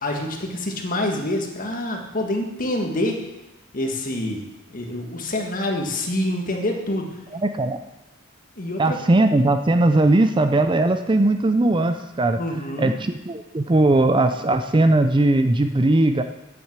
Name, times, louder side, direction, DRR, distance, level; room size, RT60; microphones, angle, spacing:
voice 1, 0.0-3.2 3.7-4.4 4.7-7.2 8.6-9.0 12.4-12.9, left 1 dB, 45° left, 2 dB, 1.7 m, -26 dB
voice 2, 7.3-7.8 8.8-12.4 12.8-16.2, right 2 dB, 25° right, 8 dB, 0.5 m, -19 dB
8.7 x 7.7 x 7.4 m, 1.0 s
head